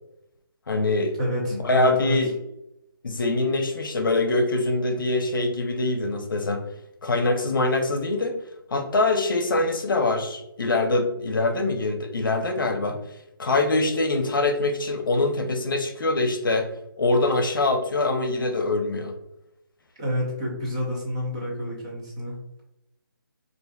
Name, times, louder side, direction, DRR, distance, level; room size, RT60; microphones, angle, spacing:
voice 1, 0.7-1.2 1.5-2.3 3.0-6.6 7.0-8.4 8.7-13.0 13.4-16.7 17.0-19.1, left 2 dB, 65° left, 5 dB, 0.7 m, -24 dB
voice 2, 1.2-2.2 20.0-22.4, left 1 dB, 15° right, -4 dB, 0.5 m, -29 dB
4.9 x 2.5 x 2.3 m, 0.83 s
hypercardioid pair, 175°, 12 cm